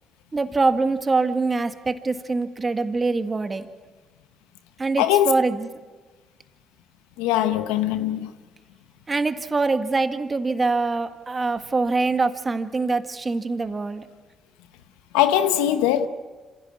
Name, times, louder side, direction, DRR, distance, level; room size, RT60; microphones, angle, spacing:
voice 1, 0.3-3.7 4.8-5.7 9.1-14.0, right 3 dB, 35° right, 1.8 m, -24 dB
voice 2, 5.0-5.3 7.2-8.3 15.1-16.1, left 11 dB, 90° left, 1.0 m, -21 dB
26.5 x 16.0 x 8.6 m
hypercardioid pair, 55°, 0 cm